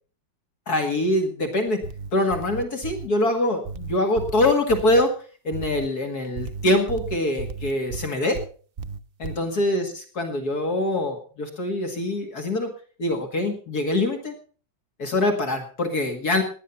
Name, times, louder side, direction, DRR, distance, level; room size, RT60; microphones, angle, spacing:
voice 1, 0.7-1.8 2.1-5.1 5.4-8.4 9.2-12.7 13.0-14.3 15.0-16.4, left 1 dB, 55° left, 4 dB, 2.5 m, -24 dB
sound 1, 1.7-3.1 3.7-5.1 5.5-5.9 6.4-8.5 8.8-9.4, right 4 dB, 60° right, 0.6 m, -34 dB
18.0 x 10.5 x 5.6 m, 0.41 s
omnidirectional pair, 2.0 m